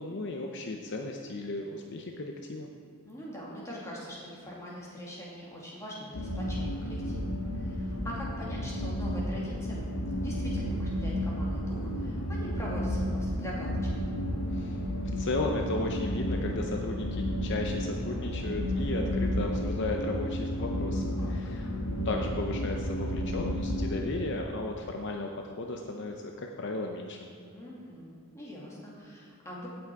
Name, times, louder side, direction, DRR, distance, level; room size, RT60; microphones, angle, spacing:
voice 1, 0.0-2.7 14.5-14.8 15.2-21.7 22.0-27.2, left 2 dB, 50° left, 2 dB, 0.7 m, -35 dB
voice 2, 3.0-9.8 10.2-13.8 21.2-21.3 27.5-29.7, equal, 15° left, -5 dB, 2.3 m, -42 dB
sound 1, 6.1-24.1, equal, 75° left, 1.3 m, -32 dB
16.0 x 6.2 x 4.7 m, 2.3 s
head